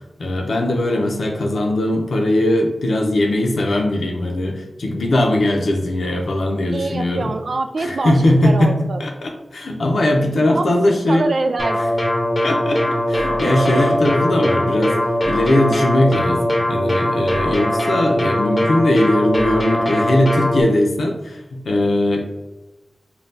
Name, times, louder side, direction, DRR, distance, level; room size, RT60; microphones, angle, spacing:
voice 1, 0.2-7.3 7.8-11.3 12.4-12.8 13.1-14.9 15.3-22.2, left 1 dB, 90° left, 2 dB, 0.6 m, -19 dB
voice 2, 6.7-9.0 10.5-11.8, right 3 dB, 60° right, 7 dB, 0.3 m, -24 dB
sound 1, 11.6-20.6, left 1 dB, 40° left, 0.8 m, -20 dB
Burping eructation, 13.1-14.0, right 1 dB, 45° right, 1.0 m, -26 dB
5.4 x 2.3 x 2.7 m, 1.1 s
wide cardioid pair, 110°, 0 cm